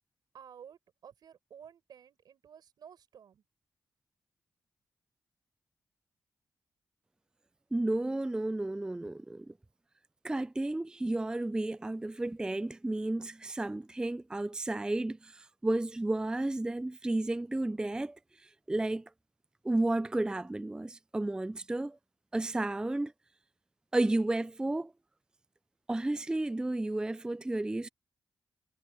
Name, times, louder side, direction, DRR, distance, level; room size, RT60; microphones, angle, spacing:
voice 1, 0.3-3.4, right 8 dB, 85° right, 4.9 m, -53 dB
voice 2, 7.7-9.5 10.2-18.2 18.7-19.0 19.6-22.0 22.3-23.1 23.9-24.9 25.9-27.9, right 2 dB, 10° right, 0.3 m, -32 dB
cardioid pair, 80°, 7 cm